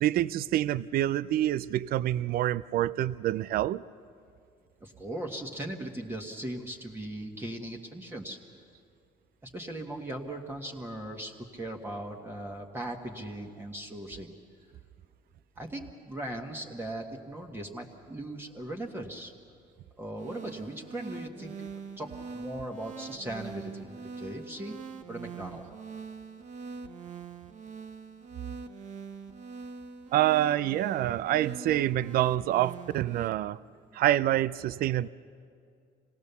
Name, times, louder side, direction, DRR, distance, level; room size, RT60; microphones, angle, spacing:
voice 1, 0.0-3.8 30.1-33.6 33.9-35.1, right 13 dB, 60° right, 17 dB, 0.5 m, -27 dB
voice 2, 4.8-8.4 9.4-14.3 15.6-19.3 20.0-21.5 22.0-24.8 25.1-25.7, right 1 dB, 15° right, 0 dB, 1.6 m, -39 dB
sound 1, 20.2-33.3, right 5 dB, 45° right, 1.3 m, -43 dB
26.0 x 18.5 x 6.9 m, 2.3 s
cardioid pair, 110°, 17 cm